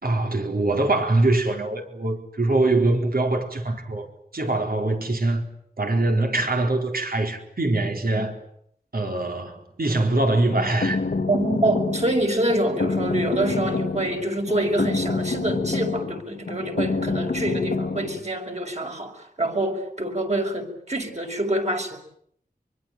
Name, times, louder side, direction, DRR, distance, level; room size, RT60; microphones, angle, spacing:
voice 1, 0.0-5.4 5.8-8.3 8.9-11.0, right 2 dB, 65° right, 4.3 m, -23 dB
sound 1, 10.5-18.2, left 3 dB, 65° left, 1.6 m, -27 dB
voice 2, 11.3-22.0, right 1 dB, 45° right, 6.2 m, -26 dB
24.5 x 24.0 x 9.3 m
wide cardioid pair, 65°, 16 cm